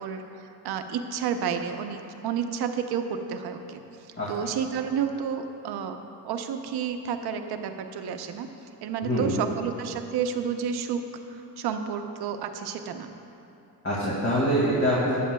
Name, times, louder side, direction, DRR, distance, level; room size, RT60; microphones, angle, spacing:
voice 1, 0.0-3.8 4.3-6.0 6.2-8.5 8.8-11.0 11.3-13.1, right 7 dB, 65° right, 6 dB, 0.8 m, -31 dB
voice 2, 9.0-9.3 13.8-15.2, equal, 30° left, -7 dB, 2.4 m, -24 dB
15.0 x 10.0 x 2.3 m, 2.9 s
cardioid pair, 95°, 42 cm